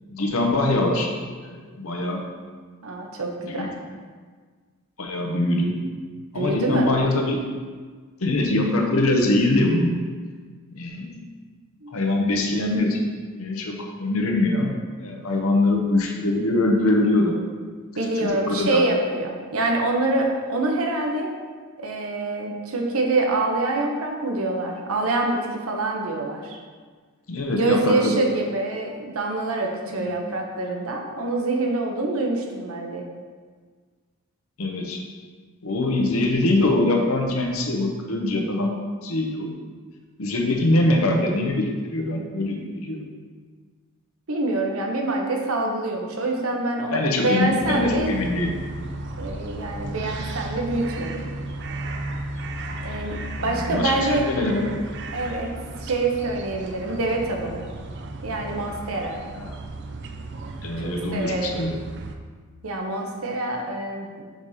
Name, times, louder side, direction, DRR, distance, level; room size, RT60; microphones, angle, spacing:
voice 1, 0.1-1.1 1.4-2.2 3.5-3.7 5.0-5.8 6.3-7.4 8.2-9.9 10.7-11.1 11.9-13.1 13.3-14.7 15.0-17.3 18.2-18.8 27.3-28.2 30.0-30.2 34.6-35.0 35.6-38.7 39.0-39.5 40.2-43.0 46.9-48.5 53.4-54.7 59.4-59.6 60.6-61.7, left 2 dB, 75° left, 1 dB, 0.9 m, -23 dB
voice 2, 2.8-3.7 6.3-7.0 11.8-12.0 17.9-21.3 21.8-26.6 27.5-33.0 44.3-48.1 49.2-51.2 52.8-54.3 55.1-55.5 55.8-57.6 58.2-59.2 60.8-61.6 62.6-64.2, right 2 dB, 75° right, 1 dB, 0.9 m, -25 dB
sound 1, 47.6-62.2, right 2 dB, 50° right, 0.4 m, -35 dB
5.2 x 4.1 x 4.9 m, 1.6 s
head